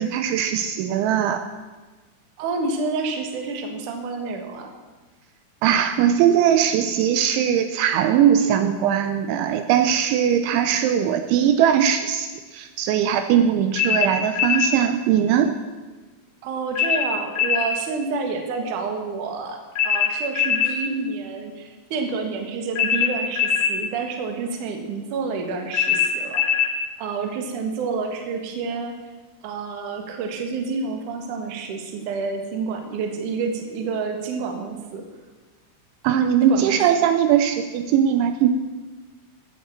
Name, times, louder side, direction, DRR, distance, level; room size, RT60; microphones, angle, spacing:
voice 1, 0.0-1.5 5.6-15.6 36.0-38.5, right 9 dB, 80° right, 8 dB, 2.9 m, -20 dB
voice 2, 2.4-4.7 16.4-19.6 19.8-26.5 27.0-28.9 29.4-35.0 36.4-36.8, right 4 dB, 60° right, 4 dB, 2.3 m, -29 dB
sound 1, 13.8-14.7 16.7-17.7 19.7-20.8 22.7-23.8 25.7-26.7, left 8 dB, 45° left, 2.5 m, -21 dB
14.0 x 8.9 x 7.3 m, 1.3 s
omnidirectional pair, 5.6 m